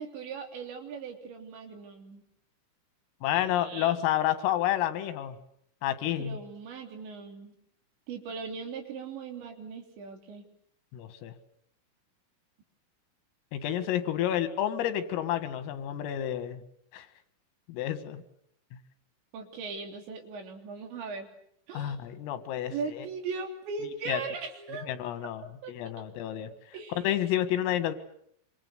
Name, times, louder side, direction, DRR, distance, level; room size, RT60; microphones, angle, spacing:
voice 1, 0.0-2.2 3.3-4.0 6.2-7.5 8.1-10.5 19.3-21.3 21.7-22.0 22.7-24.9 25.6-25.7 26.7-27.2, right 5 dB, 65° right, 5 dB, 5.3 m, -39 dB
voice 2, 3.2-5.4 5.8-6.4 10.9-11.3 13.5-16.6 16.9-17.1 17.7-18.2 21.7-23.1 24.1-24.2 24.9-26.5 26.9-27.9, left 11 dB, 90° left, 10 dB, 4.5 m, -30 dB
27.0 x 25.5 x 8.1 m, 0.69 s
omnidirectional pair, 5.8 m